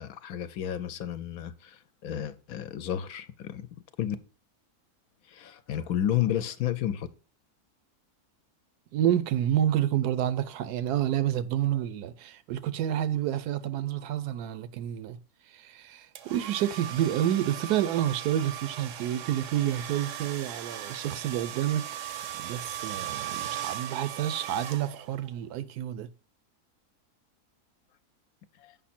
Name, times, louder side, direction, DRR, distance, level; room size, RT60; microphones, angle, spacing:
voice 1, 0.0-3.7 4.0-4.2 5.3-7.1 28.6-28.8, left 11 dB, 75° left, 1.0 m, -31 dB
voice 2, 8.9-15.2 15.5-22.0 22.3-26.1, right 11 dB, 80° right, 1.1 m, -29 dB
sound 1, 16.1-25.3, right 11 dB, 65° right, 0.8 m, -38 dB
7.3 x 5.4 x 4.2 m
omnidirectional pair, 1.6 m